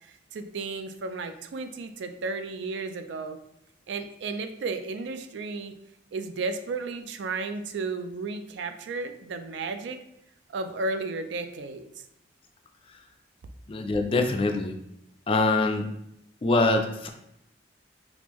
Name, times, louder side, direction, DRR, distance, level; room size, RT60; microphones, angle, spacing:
voice 1, 0.0-3.4 3.9-5.7 6.1-10.0 10.5-11.9, right 3 dB, 75° right, 8 dB, 0.3 m, -33 dB
voice 2, 13.7-14.7 15.3-15.9 16.4-17.1, left 2 dB, 30° left, 4 dB, 0.3 m, -24 dB
3.5 x 2.5 x 3.0 m, 0.80 s
head